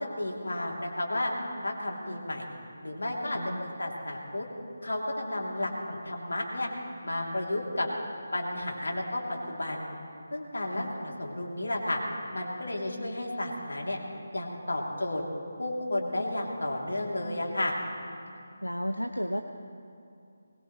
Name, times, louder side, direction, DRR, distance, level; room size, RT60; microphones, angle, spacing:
voice 1, 0.2-1.3 1.6-2.5 2.8-4.5 4.8-6.7 7.0-7.9 8.3-9.9 10.3-12.0 12.3-14.0 14.3-15.2 15.6-17.7, left 1 dB, 65° left, -1 dB, 3.1 m, -32 dB
voice 2, 3.3-3.7 10.7-10.9 18.6-19.4, equal, 90° left, 5 dB, 0.8 m, -33 dB
21.0 x 21.0 x 3.3 m, 2.5 s
figure-of-eight pair, 155°, 0 cm